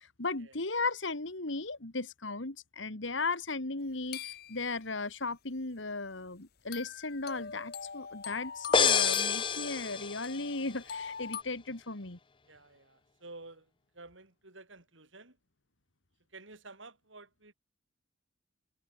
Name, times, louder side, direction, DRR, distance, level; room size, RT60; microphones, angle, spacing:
voice 1, 0.2-12.2, left 3 dB, 70° left, 2.3 m, -36 dB
sound 1, 4.1-4.8 6.7-11.4, left 6 dB, 50° left, 1.0 m, -43 dB
sound 2, 8.7-10.5, left 6 dB, 25° left, 0.6 m, -27 dB
voice 2, 12.5-13.7 13.9-15.4 16.3-17.5, right 3 dB, 75° right, 5.4 m, -51 dB
head